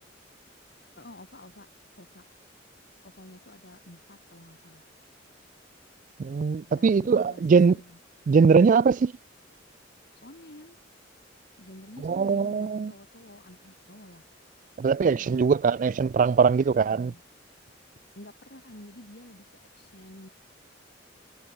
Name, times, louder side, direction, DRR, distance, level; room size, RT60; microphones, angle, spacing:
voice 1, 1.0-1.7 2.0-2.2 3.0-4.9 6.7-8.0 10.1-10.8 11.6-14.3 15.0-15.5 16.7-17.2 18.2-20.3, left 1 dB, 55° left, 4.1 m, -49 dB
voice 2, 6.2-7.7 8.3-9.1 12.0-12.9 14.8-17.1, right 5 dB, 40° right, 0.3 m, -21 dB
head